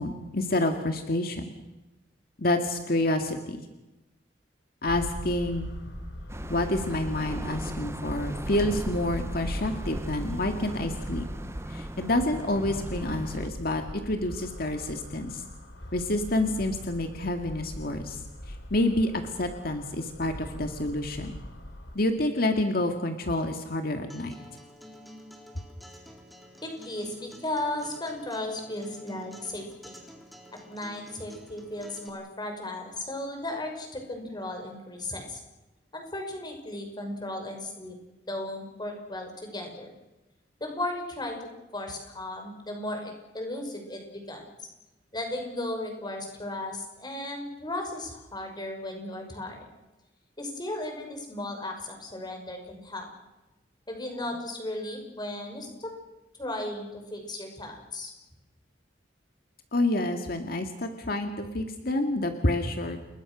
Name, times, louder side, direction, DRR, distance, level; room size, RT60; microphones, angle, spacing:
voice 1, 0.0-1.4 2.4-3.6 4.8-5.7 6.5-11.3 11.7-15.4 15.9-18.2 18.5-21.4 21.9-24.3 59.7-63.0, left 1 dB, 55° left, 5 dB, 2.1 m, -28 dB
sound 1, 4.9-22.0, equal, 85° left, 4.2 m, -41 dB
sound 2, 6.3-13.5, right 1 dB, 15° right, 0.8 m, -37 dB
Acoustic guitar, 24.1-32.1, equal, ahead, 4.1 m, -49 dB
voice 2, 26.6-29.9 30.7-35.4 35.9-38.0 38.3-39.9 40.6-44.7 45.1-49.6 50.4-53.1 53.9-55.9 56.4-58.1, left 1 dB, 25° left, 4 dB, 5.8 m, -35 dB
29.5 x 21.0 x 6.3 m, 1.0 s
head